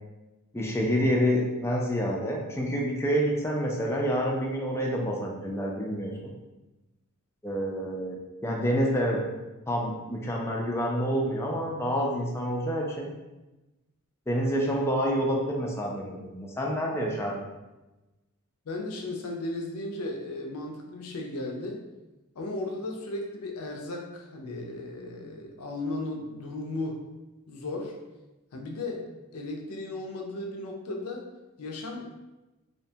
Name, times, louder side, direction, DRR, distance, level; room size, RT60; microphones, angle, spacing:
voice 1, 0.5-6.1 7.4-9.2 9.7-13.1 14.3-17.4, equal, 10° left, -2 dB, 0.3 m, -28 dB
voice 2, 18.7-21.8 22.4-27.1 27.5-28.0 28.5-31.3 31.6-32.1, left 2 dB, 75° left, 1 dB, 0.5 m, -35 dB
2.8 x 2.2 x 2.7 m, 1.1 s
head